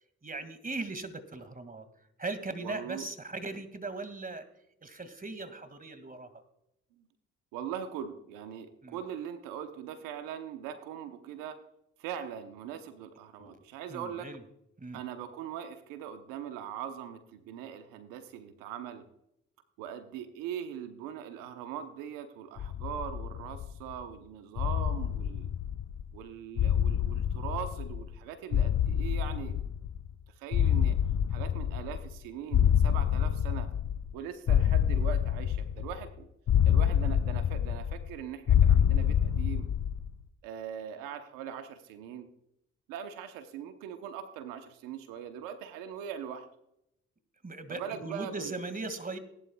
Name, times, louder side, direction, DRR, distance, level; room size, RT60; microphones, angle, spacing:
voice 1, 0.2-1.9 2.2-4.5 4.8-6.4 8.8-9.0 13.4-13.6 13.9-14.4 14.8-15.0 47.4-49.2, right 3 dB, 25° right, 10 dB, 2.1 m, -39 dB
voice 2, 2.6-3.1 6.9-7.1 7.5-11.6 12.0-14.3 14.9-19.0 19.8-25.5 26.1-29.6 30.4-31.0 31.3-33.7 34.1-36.3 36.6-39.7 40.4-42.3 42.9-46.5 47.7-48.5, right 9 dB, 85° right, 8 dB, 1.0 m, -41 dB
sound 1, 22.6-23.9 24.6-26.1 26.6-28.2 28.5-30.1 30.5-32.2 32.5-34.1 34.5-36.1 36.5-38.1 38.5-40.1, left 9 dB, 55° left, 0.7 m, -27 dB
18.0 x 11.5 x 2.3 m, 0.80 s
hypercardioid pair, 50°, 32 cm